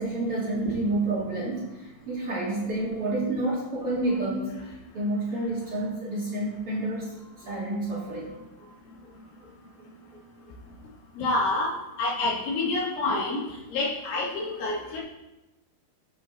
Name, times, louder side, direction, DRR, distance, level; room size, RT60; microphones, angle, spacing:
voice 1, 0.0-1.7 2.1-4.5 4.9-7.0 7.5-8.3, right 2 dB, 55° right, -6 dB, 1.5 m, -29 dB
voice 2, 11.2-11.7 12.0-13.4 13.7-15.0, left 2 dB, 80° left, -7 dB, 5.0 m, -27 dB
17.0 x 6.3 x 2.9 m, 1.0 s
omnidirectional pair, 5.4 m